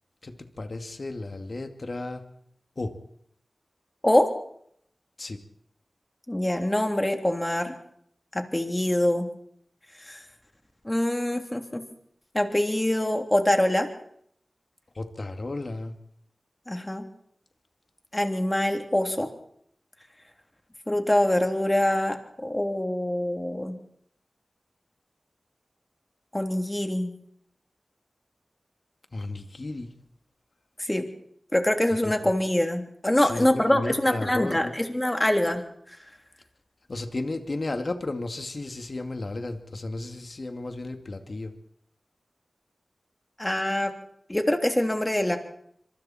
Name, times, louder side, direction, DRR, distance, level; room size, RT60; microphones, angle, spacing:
voice 1, 0.2-2.2 2.8-2.9 5.2-5.4 14.9-15.9 29.1-29.9 32.0-32.3 33.2-34.7 36.9-41.5, left 2 dB, 55° left, 6 dB, 2.4 m, -33 dB
voice 2, 6.3-7.7 8.3-9.3 10.0-10.2 10.8-11.8 12.3-13.9 16.7-17.0 18.1-19.3 20.9-23.8 26.3-27.1 30.8-31.1 31.5-36.0 43.4-43.9 44.3-45.4, left 1 dB, 20° left, 5 dB, 3.2 m, -24 dB
25.5 x 24.0 x 4.4 m, 0.67 s
cardioid pair, 50°, 0 cm